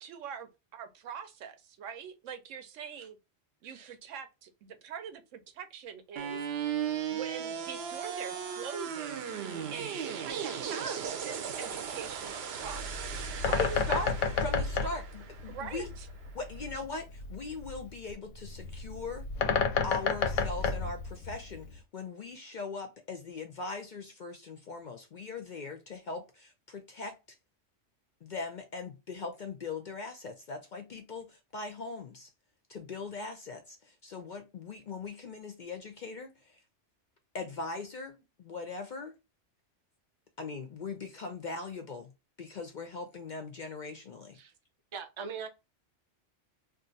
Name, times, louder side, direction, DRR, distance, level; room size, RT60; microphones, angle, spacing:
voice 1, 0.0-3.2 3.6-6.4 7.1-9.3 9.7-12.8 13.5-14.0 14.8-14.9 15.5-16.1, right 7 dB, 90° right, 1.0 m, -43 dB
voice 2, 3.6-3.9 44.3-44.5 44.9-45.5, right 6 dB, 50° right, 0.3 m, -41 dB
sound 1, 6.2-16.2, right 8 dB, 65° right, 0.8 m, -37 dB
Bird, 12.6-21.8, left 5 dB, 85° left, 0.9 m, -32 dB
voice 3, 13.4-14.1 14.4-15.9 16.3-19.3 19.8-27.1 28.2-32.3 32.7-36.6 37.3-39.1 40.4-42.1 42.4-44.4, left 3 dB, 55° left, 0.5 m, -40 dB
2.6 x 2.4 x 3.8 m
omnidirectional pair, 1.3 m